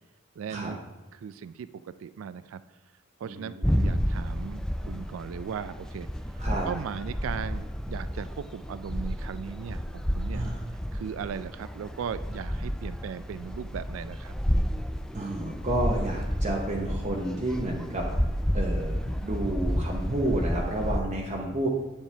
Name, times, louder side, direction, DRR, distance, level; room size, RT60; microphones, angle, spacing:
voice 1, 0.4-0.8 1.1-2.6 3.2-6.1 6.3-10.4 10.9-14.4, right 7 dB, 85° right, 15 dB, 0.3 m, -38 dB
voice 2, 3.2-3.9 6.4-6.7 10.3-10.6 15.1-18.0 18.5-21.7, right 1 dB, 35° right, -1 dB, 0.9 m, -31 dB
sound 1, 3.6-21.0, equal, 5° left, 0.3 m, -31 dB
9.0 x 7.3 x 3.4 m, 1.1 s
head